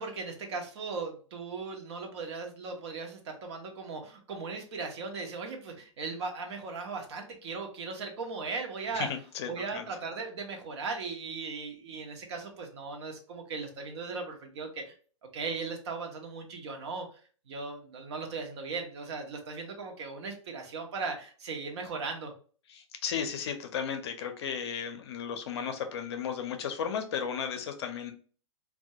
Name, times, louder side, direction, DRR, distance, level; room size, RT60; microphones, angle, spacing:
voice 1, 0.0-9.1 9.5-14.9 15.3-17.1 17.5-22.3, right 4 dB, 55° right, 3 dB, 0.7 m, -38 dB
voice 2, 8.9-9.9 22.7-28.1, left 7 dB, 55° left, 7 dB, 0.5 m, -35 dB
2.2 x 2.2 x 2.7 m, 0.40 s
hypercardioid pair, 150°, 17 cm